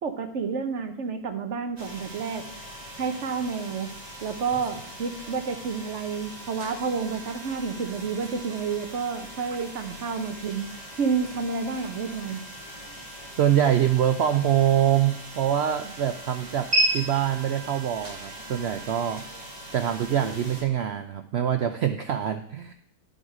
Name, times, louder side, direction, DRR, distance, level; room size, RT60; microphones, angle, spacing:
voice 1, 0.0-2.4 3.0-3.9 4.2-10.7 11.0-12.4, right 5 dB, 55° right, 7 dB, 1.1 m, -30 dB
sound 1, 1.8-20.6, right 1 dB, 25° right, 1.8 m, -36 dB
voice 2, 13.4-22.7, right 10 dB, 75° right, 8 dB, 0.6 m, -25 dB
10.5 x 5.5 x 4.9 m, 0.64 s
omnidirectional pair, 1.6 m